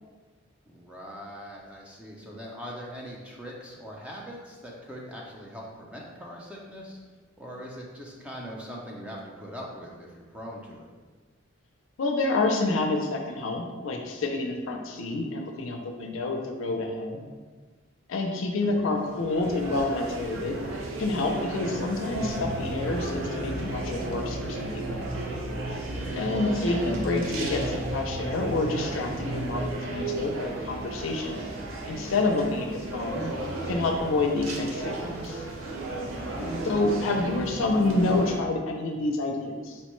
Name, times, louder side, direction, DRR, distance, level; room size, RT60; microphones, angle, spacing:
voice 1, 0.6-7.0 7.4-10.9 18.7-19.0 25.8-26.3 36.1-36.6, equal, 5° right, -3 dB, 0.4 m, -41 dB
voice 2, 12.0-17.2 18.1-20.6 21.0-25.0 26.2-31.4 31.9-33.2 33.7-35.4 36.6-39.8, left 2 dB, 75° left, 3 dB, 0.4 m, -28 dB
sound 1, 18.6-38.4, right 2 dB, 80° right, 0.6 m, -34 dB
sound 2, 22.1-29.7, right 1 dB, 35° right, 0.9 m, -36 dB
4.3 x 2.1 x 3.0 m, 1.4 s
head